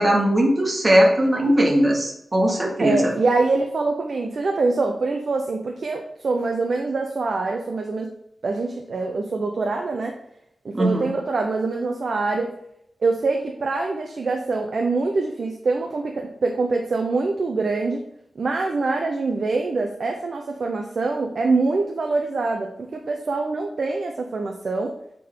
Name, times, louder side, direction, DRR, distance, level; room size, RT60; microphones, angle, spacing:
voice 1, 0.0-3.1 10.7-11.1, equal, 35° right, 0 dB, 1.8 m, -19 dB
voice 2, 2.8-8.1 8.4-10.2 10.6-12.5 13.0-18.0 18.4-24.9, right 3 dB, 70° right, 2 dB, 0.7 m, -24 dB
8.6 x 3.8 x 3.8 m, 0.75 s
wide cardioid pair, 75°, 0 cm